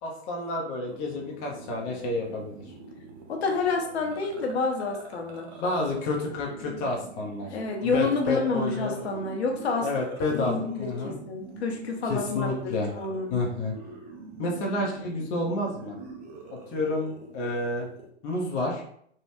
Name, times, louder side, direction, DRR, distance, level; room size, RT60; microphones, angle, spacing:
voice 1, 0.0-2.6 5.5-9.0 9.8-11.1 12.1-12.9 13.3-13.7 14.4-16.0 16.5-17.9 18.2-18.8, left 2 dB, 25° left, -1 dB, 0.6 m, -30 dB
sound 1, 0.9-18.1, right 3 dB, 25° right, 0.6 m, -45 dB
voice 2, 3.3-5.5 7.5-9.9 10.3-13.4, left 4 dB, 65° left, 2 dB, 0.8 m, -29 dB
3.2 x 2.2 x 3.0 m, 0.67 s
figure-of-eight pair, 115°, 35 cm